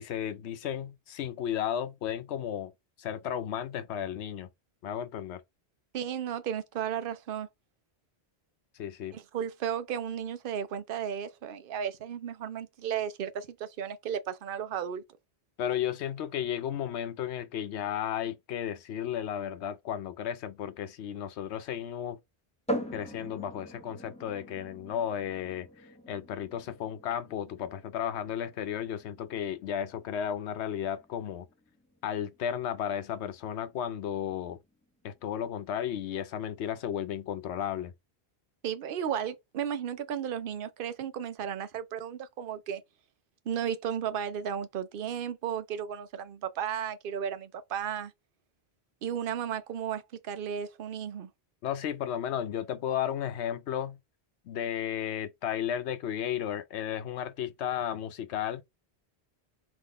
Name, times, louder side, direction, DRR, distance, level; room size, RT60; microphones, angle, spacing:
voice 1, 0.0-2.7 3.0-4.5 4.8-5.4 8.8-9.2 15.6-22.2 22.9-31.5 32.0-34.6 35.0-37.9 51.6-54.0 54.5-58.6, left 9 dB, 90° left, 0.9 m, -34 dB
voice 2, 5.9-7.5 9.1-15.0 38.6-42.8 43.5-48.1 49.0-51.3, right 8 dB, 60° right, 0.7 m, -34 dB
sound 1, 22.7-36.2, right 1 dB, 5° left, 0.9 m, -43 dB
3.8 x 2.9 x 3.8 m
omnidirectional pair, 1.1 m